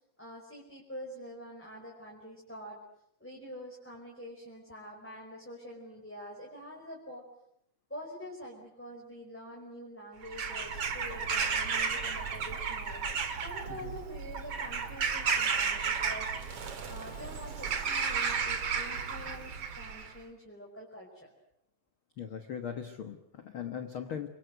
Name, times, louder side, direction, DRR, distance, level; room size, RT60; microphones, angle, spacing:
voice 1, 0.2-2.8 3.2-7.2 7.9-13.0 13.4-16.4 16.9-21.3, equal, 5° left, -2 dB, 4.8 m, -46 dB
Bird vocalization bird call bird song / Crow, 10.2-20.1, right 6 dB, 50° right, 2.9 m, -33 dB
voice 2, 22.2-24.3, left 8 dB, 50° left, 7 dB, 1.8 m, -39 dB
29.0 x 24.0 x 7.9 m, 0.75 s
omnidirectional pair, 3.7 m